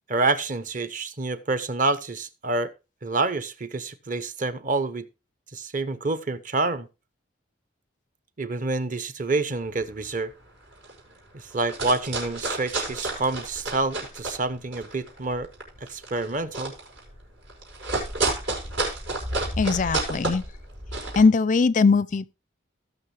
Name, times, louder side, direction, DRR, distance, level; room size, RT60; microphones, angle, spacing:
voice 1, 0.1-2.7 3.0-5.1 5.5-6.9 8.4-10.3 11.3-15.5 15.9-16.7, right 3 dB, 40° right, 0.8 m, -27 dB
sound 1, 9.7-10.0 10.4-10.5 10.7-11.2 11.5-14.4 14.7-21.2, right 2 dB, 80° right, 5.0 m, -30 dB
voice 2, 19.6-20.4 21.2-22.3, left 4 dB, 40° left, 0.4 m, -20 dB
17.5 x 6.3 x 3.3 m
head